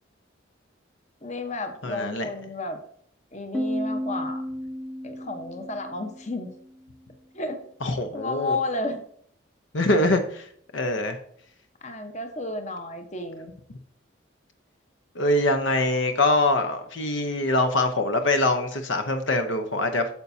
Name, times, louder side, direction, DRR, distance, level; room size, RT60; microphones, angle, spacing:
voice 1, 1.2-2.8 3.3-4.4 5.0-6.5 7.3-7.6 8.1-9.0 11.8-13.5, left 2 dB, 35° left, 6 dB, 1.0 m, -32 dB
voice 2, 1.8-2.3 7.8-8.6 9.7-10.5 10.7-11.2 15.1-20.1, left 2 dB, 70° left, 7 dB, 0.8 m, -23 dB
Piano, 3.5-7.0, equal, 5° right, 0.7 m, -33 dB
9.0 x 6.9 x 2.7 m, 0.63 s
head